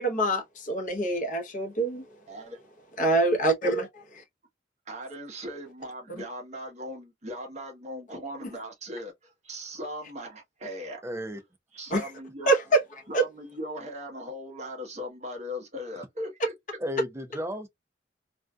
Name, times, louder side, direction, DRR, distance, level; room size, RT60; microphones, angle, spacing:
voice 1, 0.0-2.0 3.0-3.9 11.9-12.0 12.5-12.8 13.1-13.2, right 2 dB, 45° left, 0.8 m, -24 dB
voice 2, 2.3-2.6 4.9-11.0 11.7-12.5 13.1-16.5, equal, 40° right, 1.0 m, -39 dB
voice 3, 11.0-11.4 16.8-17.7, left 1 dB, 15° right, 0.5 m, -33 dB
2.6 x 2.3 x 2.2 m
head